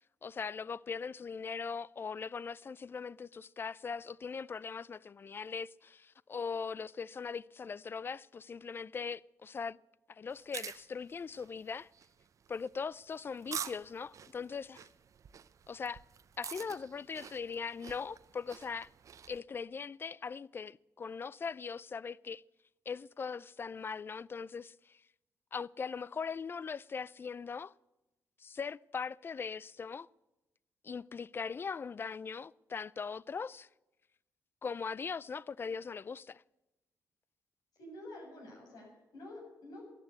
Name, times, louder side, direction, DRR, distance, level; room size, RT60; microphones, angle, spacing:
voice 1, 0.2-9.8 10.1-11.9 12.5-14.9 15.7-16.0 16.4-18.9 19.3-22.4 22.9-25.0 25.5-27.7 28.4-30.1 30.8-33.7 34.6-36.4, left 5 dB, 35° left, 0.4 m, -40 dB
sound 1, 10.3-19.4, right 7 dB, 55° right, 0.7 m, -47 dB
voice 2, 37.8-39.8, left 1 dB, 80° left, 7.3 m, -49 dB
13.5 x 9.7 x 8.1 m
cardioid pair, 100°, 7 cm